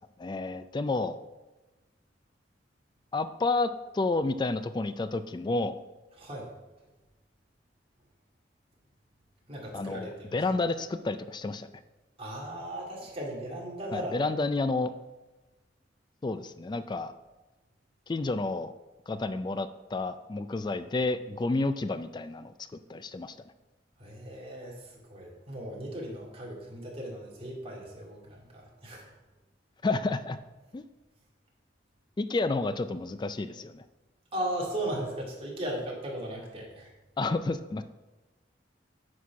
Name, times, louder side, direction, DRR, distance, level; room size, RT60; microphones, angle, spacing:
voice 1, 0.2-1.2 3.1-5.8 9.7-11.7 13.9-14.9 16.2-17.1 18.1-18.7 19.1-22.5 22.9-23.3 29.8-30.4 30.7-30.8 32.2-33.8 37.2-37.8, left 3 dB, 25° left, 12 dB, 0.3 m, -30 dB
voice 2, 6.2-6.5 9.5-10.3 12.2-14.2 24.0-29.1 34.3-36.9, right 1 dB, 35° right, -2 dB, 2.3 m, -37 dB
9.3 x 4.3 x 6.0 m, 1.1 s
head